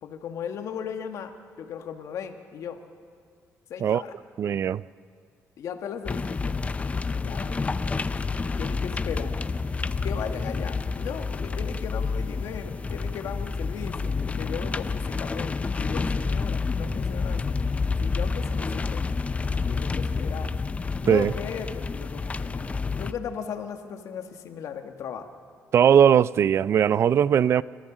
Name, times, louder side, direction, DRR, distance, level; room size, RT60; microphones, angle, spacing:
voice 1, 0.0-2.8 3.7-4.1 5.6-6.6 7.1-8.0 8.5-9.3 10.0-17.7 18.0-19.0 19.6-20.5 21.0-25.3, left 7 dB, 70° left, 1.6 m, -37 dB
voice 2, 4.4-4.8 21.1-21.3 25.7-27.6, right 8 dB, 50° right, 0.4 m, -19 dB
sound 1, 6.1-23.1, left 4 dB, 25° left, 0.6 m, -29 dB
29.0 x 14.5 x 6.2 m
cardioid pair, 115°, 6 cm